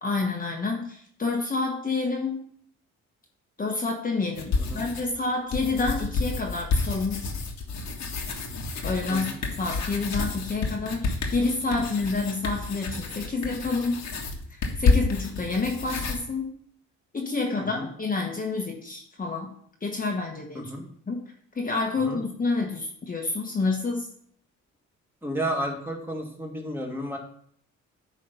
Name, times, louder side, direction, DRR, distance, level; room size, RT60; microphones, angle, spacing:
voice 1, 0.0-2.4 3.6-7.2 8.8-14.0 14.5-16.5 17.1-19.5 19.8-20.7 21.1-21.2 21.5-24.1, left 3 dB, 30° left, 0 dB, 1.2 m, -28 dB
sound 1, 4.3-5.1 5.5-16.2, left 3 dB, 65° left, 1.5 m, -29 dB
voice 2, 25.2-27.2, equal, 5° right, 0 dB, 1.7 m, -32 dB
9.4 x 3.3 x 5.5 m, 0.63 s
cardioid pair, 90°, 30 cm